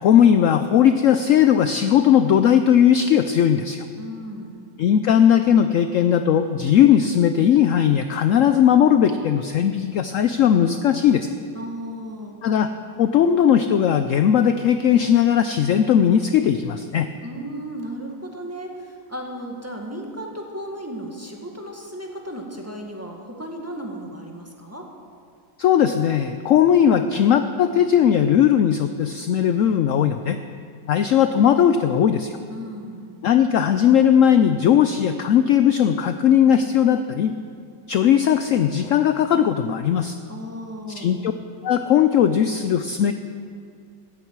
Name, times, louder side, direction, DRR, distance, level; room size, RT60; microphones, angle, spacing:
voice 1, 0.0-3.8 4.8-11.3 12.4-12.7 13.0-17.1 25.6-30.4 30.9-32.3 33.2-37.3 37.9-40.2 40.9-41.3 41.6-43.1, left 9 dB, 75° left, 9 dB, 0.7 m, -18 dB
voice 2, 4.0-4.6 11.5-12.4 17.2-24.9 32.5-33.1 40.3-41.1, equal, 10° right, 0 dB, 1.5 m, -35 dB
17.0 x 14.0 x 4.7 m, 2.2 s
omnidirectional pair, 1.9 m